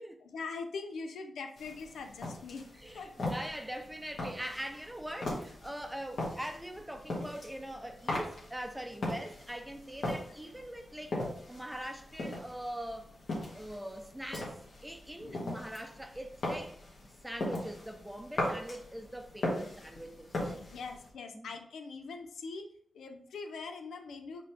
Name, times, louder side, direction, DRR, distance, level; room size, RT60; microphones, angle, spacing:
voice 1, 0.2-2.7 2.9-3.1 3.4-3.5 15.2-15.5 19.9-20.1 20.5-24.4, left 4 dB, 90° left, 0.5 m, -42 dB
sound 1, 1.6-21.1, left 1 dB, 70° left, 1.6 m, -40 dB
voice 2, 2.8-11.2 11.5-13.1 13.5-14.6 14.8-16.8 17.2-20.6 21.3-21.5, right 1 dB, 5° right, 0.6 m, -42 dB
5.0 x 3.1 x 3.4 m
cardioid pair, 60°, 0 cm